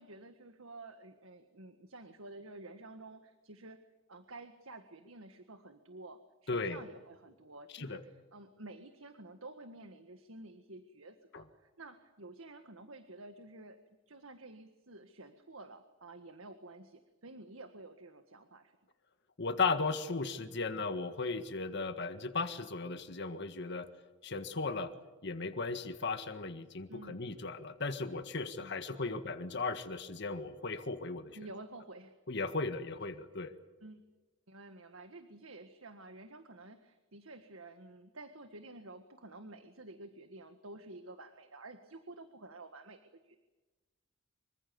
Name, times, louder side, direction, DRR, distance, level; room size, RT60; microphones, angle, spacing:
voice 1, 0.0-3.8 4.1-13.8 14.1-18.8 26.9-27.3 28.6-29.2 31.3-32.2 33.8-34.0 34.5-43.4, right 2 dB, 85° right, 8 dB, 1.7 m, -51 dB
voice 2, 6.5-6.8 7.7-8.0 11.3-11.4 19.4-23.9 24.2-24.9 25.2-31.4 32.3-33.5, left 3 dB, 60° left, 8 dB, 1.8 m, -36 dB
25.5 x 24.5 x 7.1 m, 1.2 s
head